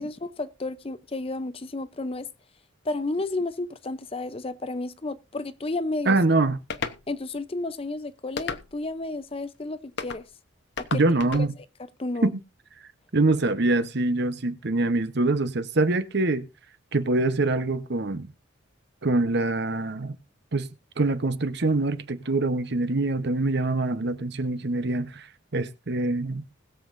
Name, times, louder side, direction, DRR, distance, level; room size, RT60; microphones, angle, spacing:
voice 1, 0.0-2.3 2.8-6.2 7.1-10.3 10.8-10.9 12.0-12.3, left 2 dB, 30° left, 0.6 m, -32 dB
voice 2, 6.1-6.6 10.9-11.5 12.2-12.4 13.1-16.5 16.9-18.3 19.0-20.1 20.5-20.7 21.0-25.3 25.5-26.5, right 2 dB, 55° right, 0.9 m, -24 dB
sound 1, 6.7-7.0 8.4-8.9 10.0-10.2 10.8-11.5, left 4 dB, 55° left, 1.0 m, -33 dB
20.5 x 7.4 x 2.6 m
head